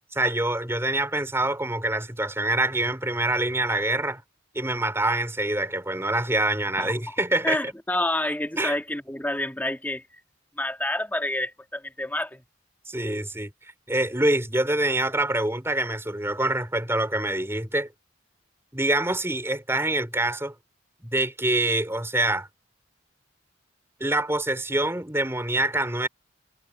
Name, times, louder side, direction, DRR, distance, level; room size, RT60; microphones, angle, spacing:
voice 1, 0.1-4.2 4.5-7.6 8.6-8.8 12.9-13.5 13.9-17.9 18.7-20.5 21.0-22.5 24.0-26.1, right 2 dB, 15° right, 3.9 m, -25 dB
voice 2, 7.4-10.0 10.6-12.4, left 1 dB, 10° left, 1.7 m, -28 dB
head